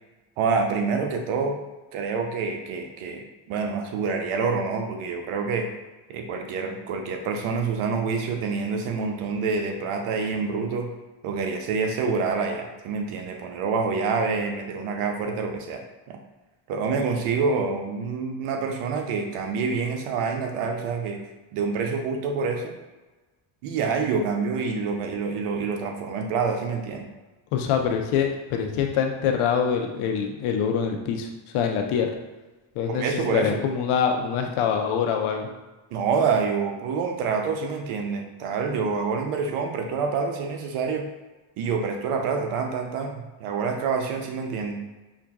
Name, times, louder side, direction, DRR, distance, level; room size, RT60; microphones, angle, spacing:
voice 1, 0.4-1.6 1.9-5.7 6.1-10.9 11.2-16.2 16.7-21.2 21.5-22.8 23.6-27.1 32.9-33.6 35.9-41.1 41.6-44.8, right 5 dB, 90° right, 4 dB, 0.6 m, -27 dB
voice 2, 27.5-32.1 32.8-35.5, left 7 dB, 80° left, 4 dB, 0.7 m, -25 dB
5.5 x 2.5 x 2.3 m, 1.2 s
supercardioid pair, 75°, 50 cm